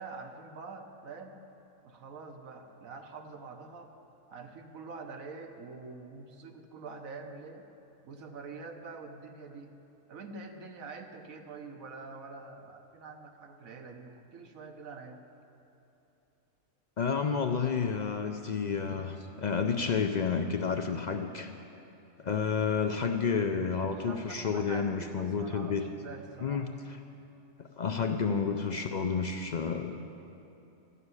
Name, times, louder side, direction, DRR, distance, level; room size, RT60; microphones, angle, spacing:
voice 1, 0.0-1.4 1.8-3.9 4.3-7.6 8.0-9.8 10.1-15.2 23.9-26.6, right 4 dB, 80° right, 5 dB, 1.4 m, -45 dB
voice 2, 17.0-21.5 22.2-25.9 26.4-26.7 27.6-30.1, left 5 dB, 65° left, 5 dB, 0.4 m, -30 dB
13.5 x 6.8 x 9.6 m, 2.9 s
omnidirectional pair, 1.4 m